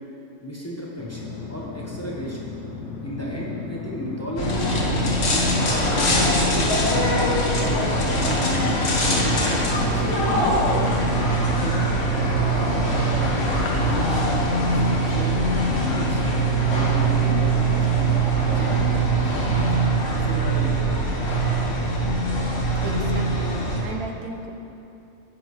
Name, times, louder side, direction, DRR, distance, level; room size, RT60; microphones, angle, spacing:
voice 1, 0.4-2.5 3.0-5.5 5.8-7.5 8.1-8.4 8.9-11.8 13.7-14.4 14.6-15.3 15.7-16.2 16.6-19.8 20.2-20.9, equal, 10° left, -5 dB, 1.1 m, -34 dB
sound 1, 1.0-12.1, left 4 dB, 65° left, 2.0 m, -36 dB
sound 2, 4.4-23.8, right 2 dB, 50° left, 1.4 m, -22 dB
voice 2, 22.8-23.5 23.8-24.5, right 3 dB, 90° right, 3 dB, 1.3 m, -35 dB
10.0 x 8.7 x 3.2 m, 2.8 s
omnidirectional pair, 1.5 m